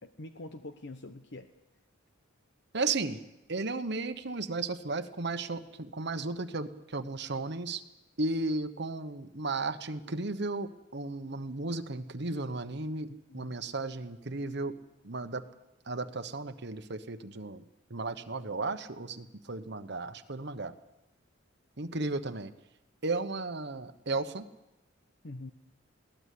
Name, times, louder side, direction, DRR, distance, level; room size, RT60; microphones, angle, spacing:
voice 1, 0.0-1.5 13.0-13.6 25.2-25.5, left 2 dB, 60° left, 8 dB, 1.0 m, -45 dB
voice 2, 2.7-3.2 3.5-7.8 8.2-14.7 15.0-15.4 15.9-17.6 17.9-20.7 21.8-22.5 23.0-24.4, right 3 dB, 60° right, 9 dB, 1.2 m, -34 dB
22.0 x 18.0 x 8.5 m, 0.94 s
head